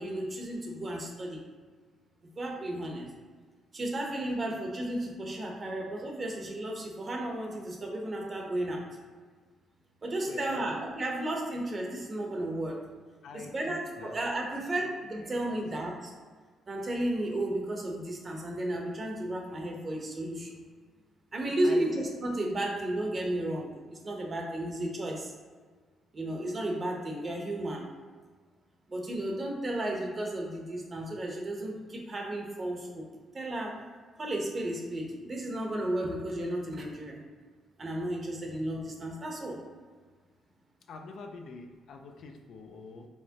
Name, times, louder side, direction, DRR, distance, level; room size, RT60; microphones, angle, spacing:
voice 1, 0.0-1.4 2.3-3.1 3.7-8.8 10.0-12.8 13.3-16.1 16.7-20.6 21.3-25.3 26.1-27.9 28.9-33.1 33.3-33.8 34.2-37.2 37.8-39.6, right 1 dB, 35° right, 0 dB, 0.9 m, -33 dB
voice 2, 10.3-10.8 13.2-14.1 14.8-14.9 15.5-15.6 21.6-22.0 40.9-43.1, left 4 dB, 70° left, 3 dB, 0.5 m, -45 dB
4.7 x 3.1 x 2.8 m, 1.5 s
cardioid pair, 90°, 0 cm